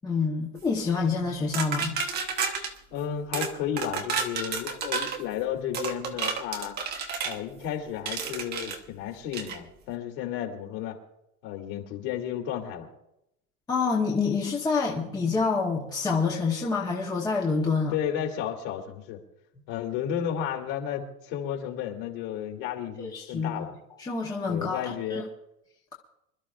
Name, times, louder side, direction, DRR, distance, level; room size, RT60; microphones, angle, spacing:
voice 1, 0.0-2.0 13.7-17.9 23.0-23.7 24.0-25.2, left 4 dB, 10° left, -2 dB, 1.0 m, -27 dB
sound 1, 1.5-2.7 3.3-3.5 3.8-5.2 5.7-7.4 8.1-8.8 9.3-9.6, right 5 dB, 25° right, 1.1 m, -31 dB
voice 2, 2.9-6.8 7.2-11.0 11.4-12.9 17.9-19.2 19.7-23.7 24.5-25.3, left 9 dB, 50° left, 1 dB, 2.8 m, -33 dB
26.0 x 12.5 x 2.4 m, 0.83 s
supercardioid pair, 160°, 41 cm